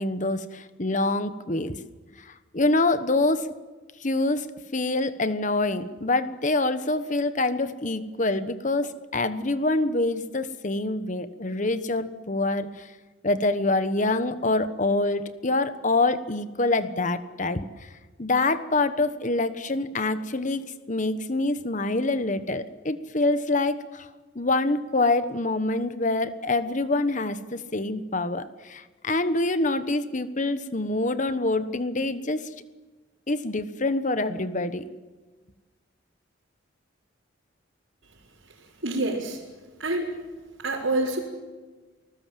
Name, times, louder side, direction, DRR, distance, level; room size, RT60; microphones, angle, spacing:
voice 1, 0.0-1.8 2.2-3.5 4.0-12.9 13.2-17.9 18.2-24.1 24.3-32.5 33.3-34.9, left 2 dB, 40° left, 12 dB, 1.2 m, -26 dB
voice 2, 38.8-39.4 39.8-40.1 40.6-41.2, right 2 dB, 80° right, -5 dB, 4.5 m, -26 dB
29.0 x 20.0 x 7.7 m, 1.3 s
head